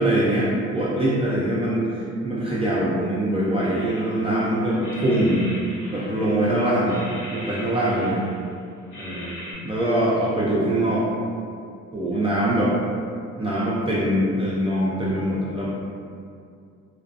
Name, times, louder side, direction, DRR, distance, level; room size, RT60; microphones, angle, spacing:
voice 1, 0.0-1.8 2.2-5.5 5.9-7.0 7.3-8.2 9.0-9.3 9.6-11.1 11.9-12.7 13.4-15.7, right 1 dB, 20° right, -8 dB, 0.4 m, -23 dB
voice 2, 1.3-2.0 4.5-6.4 6.8-7.1 7.9-8.7 9.0-9.6 10.2-10.3 12.1-12.5, left 1 dB, 30° left, -6 dB, 0.7 m, -40 dB
sound 1, 3.8-4.4 4.8-6.5 6.9-8.5 8.9-9.5, left 1 dB, 85° left, 0.8 m, -40 dB
2.3 x 2.2 x 2.6 m, 2.3 s
cardioid pair, 90°, 30 cm